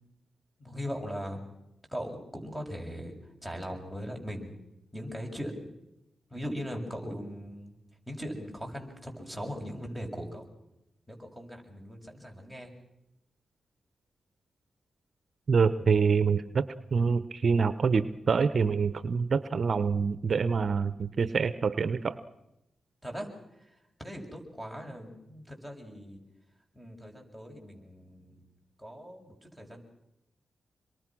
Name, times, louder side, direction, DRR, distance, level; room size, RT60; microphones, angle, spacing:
voice 1, 0.6-1.5 1.9-3.1 3.4-4.6 4.9-5.7 6.3-7.7 8.1-10.4 11.1-12.7 23.0-23.3 23.6-26.2 26.7-28.5 28.8-29.8, equal, 10° left, 3 dB, 7.2 m, -39 dB
voice 2, 15.5-22.2, right 5 dB, 60° right, 14 dB, 0.9 m, -26 dB
27.0 x 23.0 x 6.2 m, 0.89 s
supercardioid pair, 45°, 0 cm